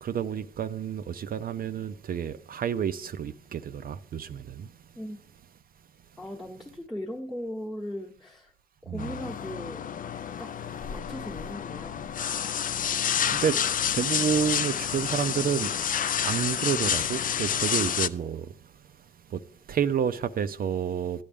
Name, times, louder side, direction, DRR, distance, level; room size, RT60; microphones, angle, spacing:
voice 1, 0.0-4.8 8.9-9.1 13.3-21.2, right 8 dB, 45° right, 0.5 m, -30 dB
voice 2, 6.2-8.5 8.8-9.8 10.4-10.5 10.9-12.1, left 1 dB, ahead, 1.1 m, -38 dB
sound 1, 9.0-18.1, left 8 dB, 45° left, 0.5 m, -29 dB
13.0 x 8.6 x 3.5 m
cardioid pair, 90°, 20 cm